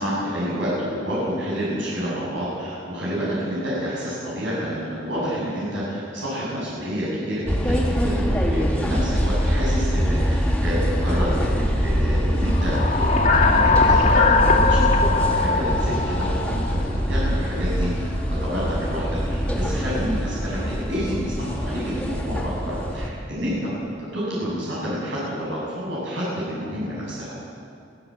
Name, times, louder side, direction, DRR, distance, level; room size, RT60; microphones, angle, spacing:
voice 1, 0.0-18.1 18.4-23.7 24.0-27.4, equal, 80° right, -7 dB, 7.5 m, -29 dB
sound 1, 7.5-23.1, equal, 5° left, 2.8 m, -23 dB
sound 2, 12.5-17.1, left 4 dB, 40° left, 2.7 m, -21 dB
24.0 x 17.5 x 7.6 m, 2.4 s
head